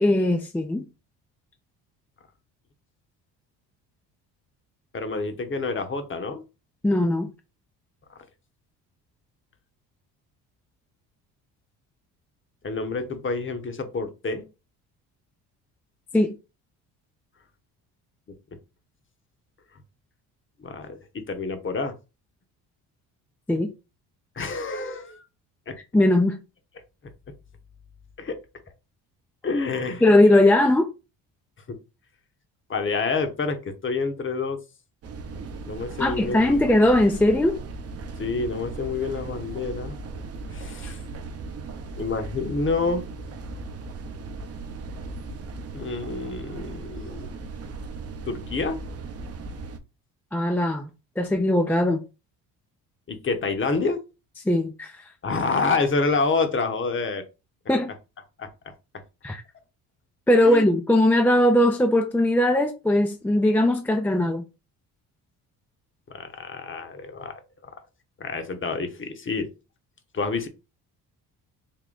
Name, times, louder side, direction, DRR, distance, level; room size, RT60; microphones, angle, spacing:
voice 1, 0.0-0.8 6.8-7.3 16.1-16.3 23.5-23.7 25.9-26.4 30.0-30.9 36.0-37.6 40.8-40.9 50.3-50.9 51.2-52.0 54.5-54.9 57.7-57.9 59.2-59.4 60.3-64.4, left 1 dB, 5° left, 0.3 m, -20 dB
voice 2, 4.9-6.4 12.6-14.5 20.6-21.9 24.4-25.2 25.7-25.8 28.2-28.4 29.4-30.0 32.7-34.6 35.7-36.5 38.2-40.0 40.5-41.0 42.0-43.1 45.7-47.3 48.3-48.8 53.1-54.0 55.2-57.2 58.4-58.5 60.4-60.6 66.1-67.4 68.2-69.5 70.1-70.5, left 4 dB, 30° left, 0.9 m, -28 dB
sound 1, 35.0-49.8, right 3 dB, 40° right, 0.6 m, -37 dB
3.7 x 2.2 x 3.8 m
supercardioid pair, 75°, 39 cm